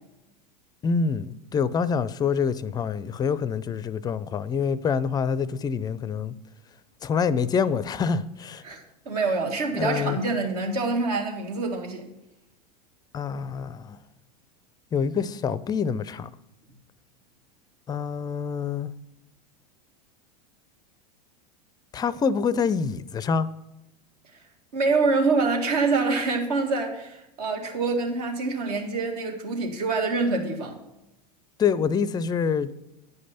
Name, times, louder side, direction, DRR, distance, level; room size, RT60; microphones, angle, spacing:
voice 1, 0.8-6.3 7.0-8.6 9.7-10.2 13.1-14.0 14.9-16.3 17.9-18.9 21.9-23.5 31.6-32.7, left 6 dB, 20° left, 0.4 m, -26 dB
voice 2, 8.6-12.1 24.7-30.8, right 3 dB, 70° right, 1.8 m, -26 dB
9.6 x 5.2 x 5.5 m
hypercardioid pair, 95°, 21 cm